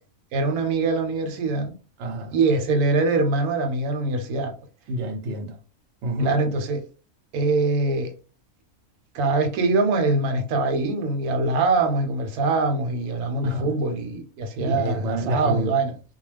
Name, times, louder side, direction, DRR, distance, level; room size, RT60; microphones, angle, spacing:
voice 1, 0.3-1.7 2.3-4.5 6.2-6.8 7.3-8.1 9.1-15.9, right 3 dB, 90° right, 1.1 m, -23 dB
voice 2, 2.0-2.3 4.9-5.6 6.0-6.4 13.4-13.8 14.6-15.7, equal, 60° right, 0.9 m, -28 dB
2.3 x 2.2 x 3.2 m
omnidirectional pair, 1.5 m